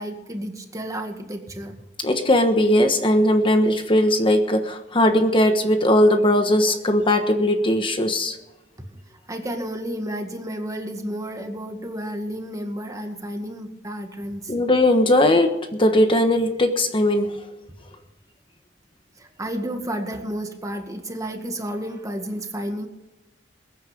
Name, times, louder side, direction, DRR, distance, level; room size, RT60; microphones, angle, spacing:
voice 1, 0.0-1.8 8.9-9.0 9.3-14.6 19.2-22.9, equal, 20° right, 4 dB, 1.9 m, -31 dB
voice 2, 2.0-8.4 14.5-17.4, left 1 dB, 30° left, 6 dB, 1.3 m, -19 dB
21.5 x 9.8 x 5.2 m, 0.99 s
head